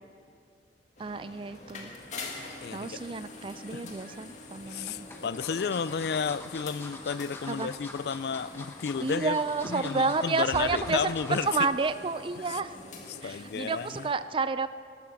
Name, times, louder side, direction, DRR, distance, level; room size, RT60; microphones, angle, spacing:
sound 1, 1.0-14.1, left 2 dB, 40° left, 1.9 m, -45 dB
voice 1, 1.0-1.9 2.7-5.3 7.5-7.7 9.0-12.8 13.2-14.7, right 4 dB, 30° right, 13 dB, 0.4 m, -30 dB
sound 2, 3.6-4.2 4.9-11.6 12.0-12.2 12.5-12.6, left 2 dB, 15° left, 1.3 m, -45 dB
voice 2, 4.7-9.4 9.7-11.5 13.1-14.1, left 6 dB, 60° left, 17 dB, 0.4 m, -32 dB
20.0 x 11.5 x 5.9 m, 2.4 s
head